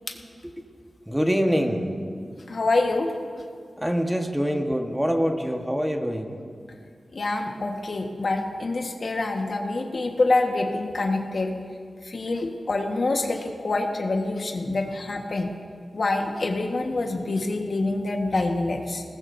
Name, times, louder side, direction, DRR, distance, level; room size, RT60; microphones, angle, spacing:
voice 1, 1.1-2.0 3.8-6.4, equal, 5° right, 3 dB, 1.2 m, -25 dB
voice 2, 2.5-3.1 7.1-11.5 12.0-15.5 15.9-19.0, left 2 dB, 60° left, 2 dB, 1.3 m, -26 dB
21.5 x 19.0 x 2.6 m, 2.2 s
wide cardioid pair, 70°, 0 cm